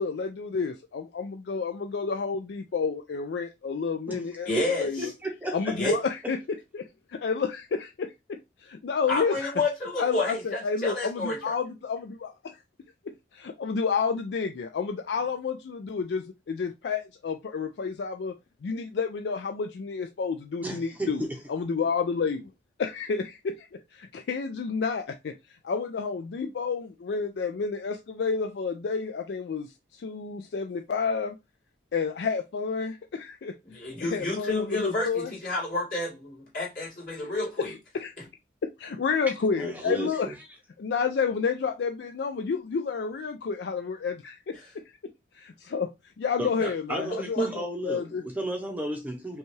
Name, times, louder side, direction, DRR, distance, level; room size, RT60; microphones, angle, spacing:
voice 1, 0.0-4.5 4.8-5.1 5.5-6.4 6.7-9.5 10.0-12.3 13.3-18.3 18.6-21.2 21.5-22.5 22.8-25.3 25.6-31.3 31.9-33.5 34.0-35.3 37.6-38.1 38.8-40.3 40.8-44.8 45.3-45.9 46.2-48.2, left 5 dB, 70° left, 0.4 m, -30 dB
voice 2, 4.5-5.1 5.7-6.0 9.1-11.5 33.7-37.8 38.2-38.3 44.5-44.7 46.6-46.7 47.1-47.5, left 2 dB, 50° left, 2.3 m, -30 dB
voice 3, 5.0-5.8 20.6-21.4 39.6-40.3 46.4-49.4, right 1 dB, 10° right, 0.6 m, -33 dB
5.3 x 2.3 x 3.1 m
head